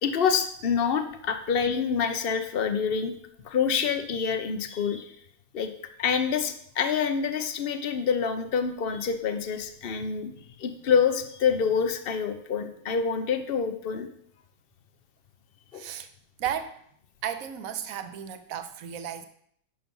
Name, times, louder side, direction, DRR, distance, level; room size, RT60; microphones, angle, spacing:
voice 1, 0.0-3.2 3.4-5.1 5.5-5.7 6.0-10.3 10.6-14.1 15.7-15.8, left 6 dB, 55° left, 8 dB, 0.6 m, -27 dB
voice 2, 15.7-16.1 16.4-16.8 17.2-19.2, right 9 dB, 60° right, 9 dB, 1.1 m, -34 dB
10.5 x 5.9 x 5.4 m, 0.68 s
omnidirectional pair, 2.0 m